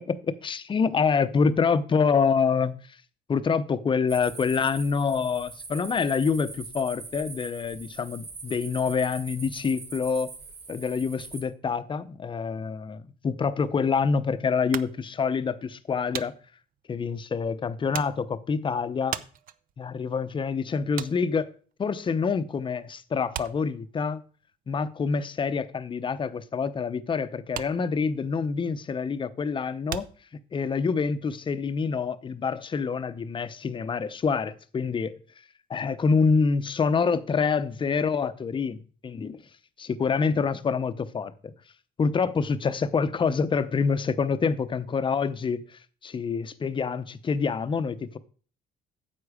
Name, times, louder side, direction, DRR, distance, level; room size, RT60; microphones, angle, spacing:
voice 1, 0.1-2.7 3.3-10.3 10.7-16.3 16.9-19.2 19.8-21.5 21.8-24.2 24.7-30.0 30.5-35.2 35.7-39.4 39.8-41.5 42.0-45.6 46.0-48.2, left 5 dB, 30° left, 0.8 m, -26 dB
sound 1, 4.1-11.4, right 4 dB, 40° right, 4.3 m, -42 dB
sound 2, 14.7-22.6 22.8-30.9, right 10 dB, 55° right, 0.6 m, -41 dB
9.6 x 7.5 x 5.0 m
cardioid pair, 110°, 17 cm